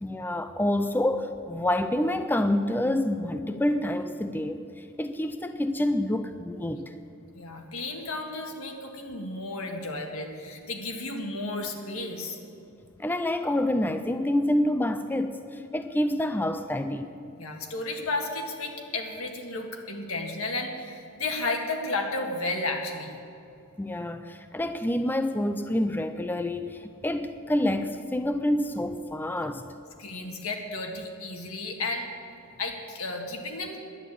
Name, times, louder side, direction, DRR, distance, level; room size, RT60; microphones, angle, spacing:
voice 1, 0.0-6.9 13.0-17.1 23.8-29.7, left 1 dB, 10° left, 9 dB, 0.4 m, -27 dB
voice 2, 7.3-12.4 17.4-23.2 30.0-32.1 32.6-33.8, left 2 dB, 75° left, 3 dB, 1.8 m, -33 dB
11.0 x 10.0 x 8.5 m, 2.7 s
head